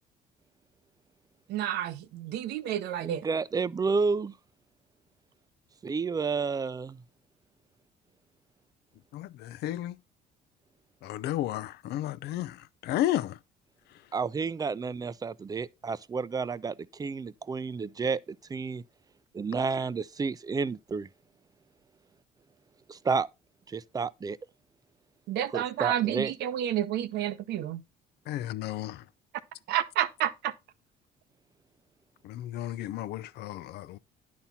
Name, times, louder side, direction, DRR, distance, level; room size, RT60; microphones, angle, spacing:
voice 1, 1.5-3.2 25.3-27.8 29.7-30.5, right 11 dB, 80° right, 0.8 m, -30 dB
voice 2, 3.0-4.3 5.8-7.0 14.1-18.2 18.5-18.8 19.4-21.1 22.9-23.3 23.7-24.4 25.5-26.3, right 5 dB, 20° right, 0.5 m, -30 dB
voice 3, 9.1-9.9 11.0-13.4 28.3-29.0 32.2-34.0, left 13 dB, 75° left, 0.5 m, -33 dB
10.5 x 4.2 x 5.7 m
cardioid pair, 110°, 17 cm